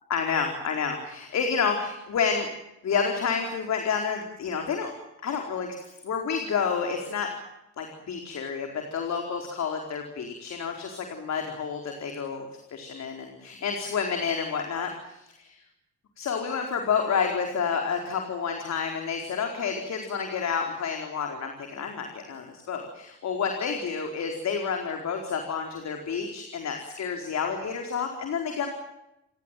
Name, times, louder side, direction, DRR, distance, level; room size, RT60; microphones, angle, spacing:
voice 1, 0.1-2.5 2.8-4.9 5.2-7.3 7.8-15.6 16.2-28.7, left 6 dB, 60° left, 3 dB, 4.5 m, -29 dB
29.5 x 17.5 x 9.3 m, 0.87 s
cardioid pair, 90°, 30 cm